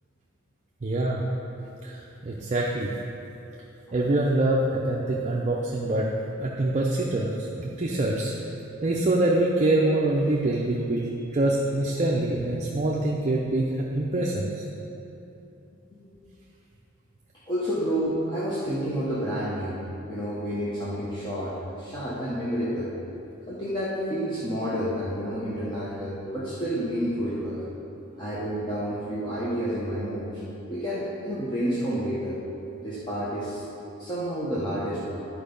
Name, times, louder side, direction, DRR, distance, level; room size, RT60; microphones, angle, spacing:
voice 1, 0.8-1.2 1.8-2.9 3.9-6.1 6.4-8.4 8.8-14.6, right 2 dB, 35° right, -2 dB, 0.5 m, -25 dB
voice 2, 17.5-19.8 20.1-22.9 23.5-27.6 28.2-30.4 30.7-32.4 32.8-33.6 34.0-35.2, equal, 20° left, -9 dB, 1.0 m, -29 dB
11.0 x 4.6 x 5.3 m, 2.9 s
head